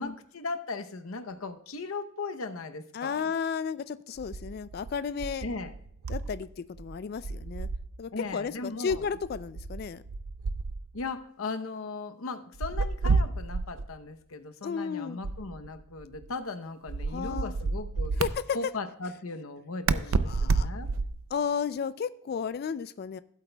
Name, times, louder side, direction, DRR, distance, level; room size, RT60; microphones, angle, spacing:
voice 1, 0.0-3.2 5.4-5.7 8.1-9.1 10.9-18.1 18.5-20.9, left 3 dB, 85° left, 8 dB, 0.8 m, -37 dB
voice 2, 2.9-5.5 6.1-7.7 8.0-10.0 14.6-15.2 17.1-17.5 18.2-18.6 20.1-20.7 21.3-23.2, left 6 dB, 45° left, 14 dB, 0.3 m, -33 dB
sound 1, 4.2-6.5 6.7-8.0 8.9-11.1 12.5-13.9 15.2-16.3 16.9-18.3 19.9-21.3, right 4 dB, 85° right, 0.5 m, -31 dB
16.0 x 8.2 x 2.2 m, 0.70 s
head